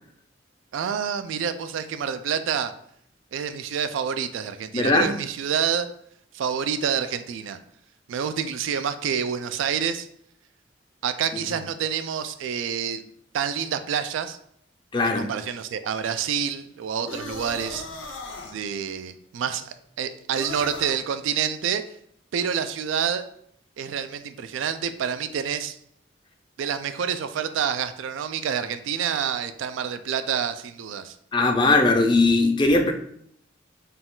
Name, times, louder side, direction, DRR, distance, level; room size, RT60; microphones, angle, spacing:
voice 1, 0.7-2.7 3.3-5.9 6.3-7.6 8.1-10.1 11.0-13.1 13.3-14.4 15.0-17.9 18.5-21.8 22.3-23.2 23.8-25.8 26.6-31.2, right 7 dB, 80° right, 10 dB, 0.3 m, -28 dB
voice 2, 4.7-5.1 14.9-15.3 31.3-32.9, left 3 dB, 25° left, 4 dB, 0.4 m, -19 dB
sound 1, 17.1-18.6 20.3-21.0, left 3 dB, 90° left, 0.7 m, -37 dB
4.1 x 2.3 x 3.7 m, 0.68 s
head